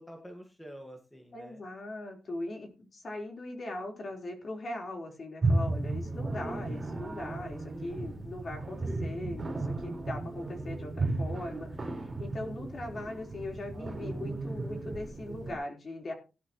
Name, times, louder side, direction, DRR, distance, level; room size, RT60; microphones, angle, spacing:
voice 1, 0.0-1.6 7.7-8.2, equal, 5° left, 2 dB, 1.8 m, -48 dB
voice 2, 1.3-16.1, left 2 dB, 40° left, 2 dB, 4.1 m, -40 dB
sound 1, 5.4-15.5, right 2 dB, 25° right, 4.3 m, -34 dB
18.0 x 11.0 x 3.1 m, 0.32 s
wide cardioid pair, 170°, 0 cm